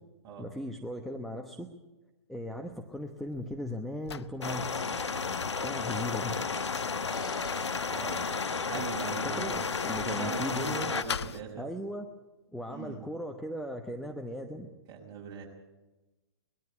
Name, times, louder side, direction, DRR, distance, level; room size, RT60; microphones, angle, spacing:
voice 1, 0.4-1.7 2.3-4.9 5.6-6.3 9.2-10.9 11.6-12.0 12.5-14.7, equal, ahead, 3 dB, 1.1 m, -38 dB
sound 1, 2.7-4.4 7.1-8.2 8.7-10.2 10.8-11.4, left 7 dB, 70° left, 0.8 m, -41 dB
sound 2, 4.4-11.0, left 5 dB, 85° left, 1.2 m, -32 dB
sound 3, 7.1-9.4, left 3 dB, 30° left, 6.7 m, -48 dB
voice 2, 7.9-8.2 8.7-9.6 9.9-11.7 12.7-13.0 14.9-15.5, right 6 dB, 25° right, 0 dB, 5.7 m, -40 dB
20.5 x 13.5 x 9.9 m, 1.1 s
hypercardioid pair, 130°, 14 cm